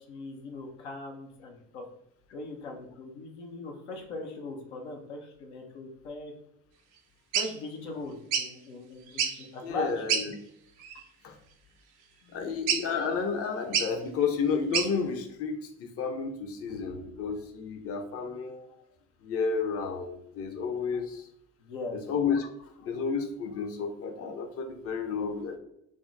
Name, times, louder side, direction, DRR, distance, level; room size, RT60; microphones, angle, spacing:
voice 1, 0.1-1.8 2.3-6.3 7.3-10.0 12.2-12.5 21.6-21.9, left 2 dB, 90° left, 1 dB, 0.6 m, -40 dB
sound 1, 7.3-7.5 8.3-8.5 9.1-9.5 10.1-10.3 10.8-11.0 12.7-13.0 13.7-13.9 14.7-14.9, right 7 dB, 70° right, 0.5 m, -28 dB
voice 2, 9.6-10.3 11.2-11.4 12.3-18.7 19.2-21.3 21.9-25.6, left 5 dB, 45° left, 5 dB, 0.6 m, -31 dB
2.4 x 2.0 x 3.7 m, 0.77 s
hypercardioid pair, 55°, 34 cm